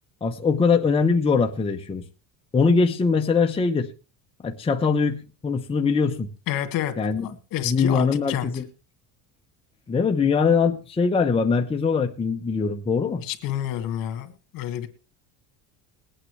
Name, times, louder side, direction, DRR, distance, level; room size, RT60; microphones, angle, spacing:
voice 1, 0.2-2.1 2.5-3.9 4.4-5.2 5.4-6.3 7.0-7.3 7.6-8.6 9.9-13.2, left 5 dB, 15° left, 3 dB, 0.9 m, -22 dB
voice 2, 6.5-6.9 7.2-8.5 13.2-14.9, left 12 dB, 65° left, 8 dB, 2.0 m, -29 dB
21.0 x 8.9 x 3.3 m, 0.32 s
cardioid pair, 135°, 37 cm